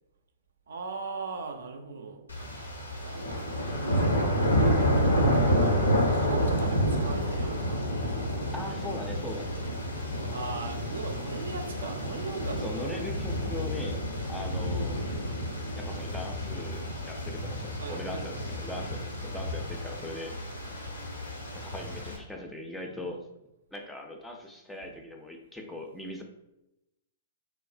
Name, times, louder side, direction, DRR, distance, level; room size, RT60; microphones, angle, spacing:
voice 1, 0.7-2.7 3.0-8.0 10.0-13.1 17.8-19.1, right 4 dB, 70° right, 4 dB, 0.4 m, -40 dB
sound 1, 2.3-22.2, equal, 85° left, 0.7 m, -29 dB
voice 2, 8.5-9.5 12.6-14.0 14.3-15.0 15.7-20.4 21.6-23.2 23.7-26.2, left 1 dB, 5° left, 2 dB, 0.4 m, -40 dB
3.2 x 2.0 x 2.5 m, 0.90 s
figure-of-eight pair, 115°, 0 cm